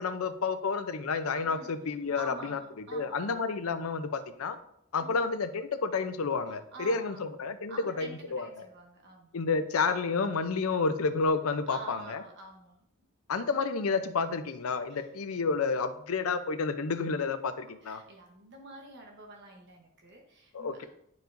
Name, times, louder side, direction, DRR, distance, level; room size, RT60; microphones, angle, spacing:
voice 1, 0.0-2.6 2.9-4.6 4.9-8.5 9.3-12.2 13.3-18.0 20.5-20.9, left 4 dB, 90° left, 10 dB, 0.6 m, -30 dB
voice 2, 2.1-3.3 5.0-5.3 6.7-7.2 7.7-9.4 11.7-12.8 14.9-15.1 17.8-20.9, right 2 dB, 55° right, 1 dB, 1.0 m, -48 dB
10.5 x 4.7 x 2.6 m, 0.73 s
head